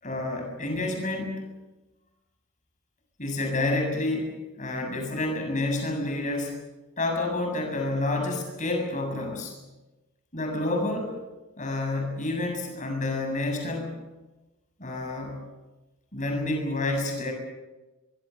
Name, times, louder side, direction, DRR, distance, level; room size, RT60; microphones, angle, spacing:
voice 1, 0.0-1.5 3.2-6.6 7.0-9.6 10.3-11.2 11.6-14.0 14.8-15.4 16.1-17.3, left 2 dB, 35° left, 3 dB, 7.2 m, -29 dB
25.0 x 22.0 x 7.8 m, 1.1 s
head